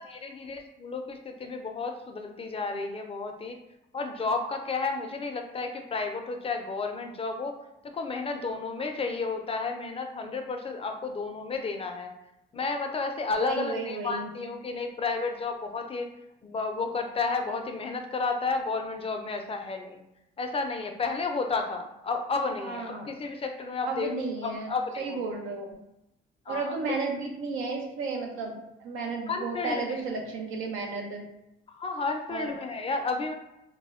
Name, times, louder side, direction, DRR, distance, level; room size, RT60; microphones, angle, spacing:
voice 1, 0.0-3.6 3.9-7.6 7.8-12.1 12.5-16.1 16.4-20.0 20.4-24.1 24.4-25.2 26.5-27.0 29.3-30.0 31.7-33.3, left 4 dB, 30° left, 4 dB, 0.4 m, -32 dB
voice 2, 13.4-14.3 22.6-23.1 23.8-25.7 26.5-31.2 32.3-32.5, right 3 dB, 90° right, 1 dB, 0.6 m, -33 dB
2.1 x 2.1 x 3.5 m, 0.88 s
cardioid pair, 90°, 20 cm